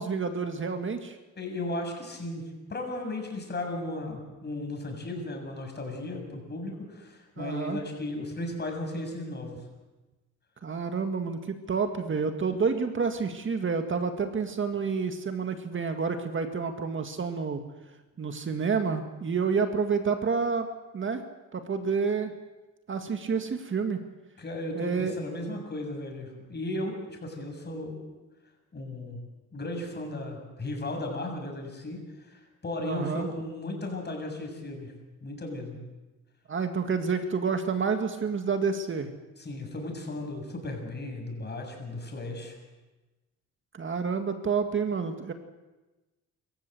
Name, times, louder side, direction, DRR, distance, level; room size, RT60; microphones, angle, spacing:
voice 1, 0.0-1.2 7.4-7.8 10.6-17.6 18.2-20.7 20.9-21.2 21.5-22.3 22.9-24.0 24.7-25.2 32.8-33.3 36.5-39.1 43.7-45.3, right 5 dB, 40° right, 6 dB, 2.0 m, -29 dB
voice 2, 1.4-2.4 2.7-9.6 24.4-26.9 27.2-28.1 28.7-29.2 29.5-32.0 32.3-34.9 35.2-35.8 39.4-42.6, left 1 dB, 35° left, 3 dB, 7.0 m, -35 dB
25.5 x 15.0 x 8.0 m, 1.1 s
cardioid pair, 90°, 30 cm